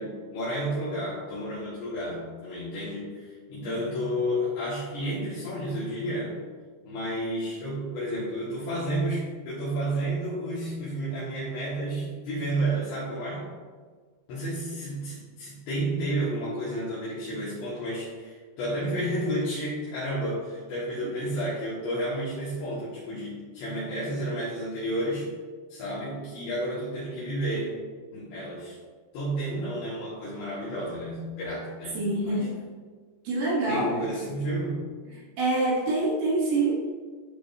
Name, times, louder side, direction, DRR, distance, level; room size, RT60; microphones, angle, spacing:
voice 1, 0.0-6.4 6.8-13.5 14.3-25.3 25.7-27.8 28.1-28.8 29.1-32.5 33.7-34.8, right 1 dB, 70° left, -10 dB, 3.8 m, -31 dB
voice 2, 32.0-32.5 33.3-34.0 35.4-36.9, right 2 dB, 65° right, -6 dB, 3.5 m, -26 dB
12.5 x 4.8 x 2.7 m, 1.5 s
omnidirectional pair, 5.4 m